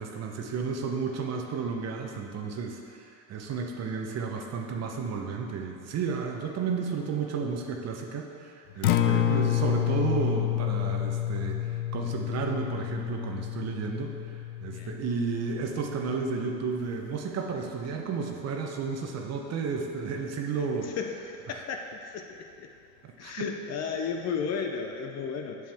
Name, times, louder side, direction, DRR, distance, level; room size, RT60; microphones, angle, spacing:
voice 1, 0.0-14.1 14.6-21.0 23.0-23.5, right 5 dB, 40° right, 2 dB, 0.9 m, -32 dB
Acoustic guitar, 8.7-16.9, left 12 dB, 85° left, 0.5 m, -29 dB
voice 2, 20.5-22.7 23.2-25.7, left 6 dB, 40° left, 4 dB, 0.7 m, -34 dB
7.6 x 7.1 x 3.5 m, 2.5 s
hypercardioid pair, 90°, 42 cm